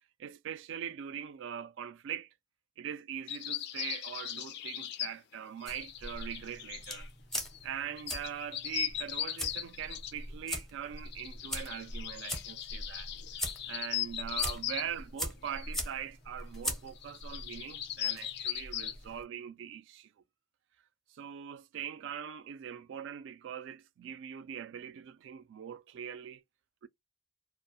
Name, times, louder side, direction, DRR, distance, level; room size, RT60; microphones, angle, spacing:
voice 1, 0.2-2.3 2.8-7.1 7.6-13.1 13.7-20.1 21.1-26.4 26.8-26.9, right 9 dB, 70° right, 0.3 m, -42 dB
sound 1, 3.3-5.3 5.6-7.1 7.4-7.7 8.0-10.2 11.0-14.9 15.5-15.9 16.4-16.5 16.9-19.1, left 12 dB, 55° left, 0.3 m, -38 dB
sound 2, 5.7-19.2, left 1 dB, ahead, 0.5 m, -42 dB
2.2 x 2.0 x 2.7 m
head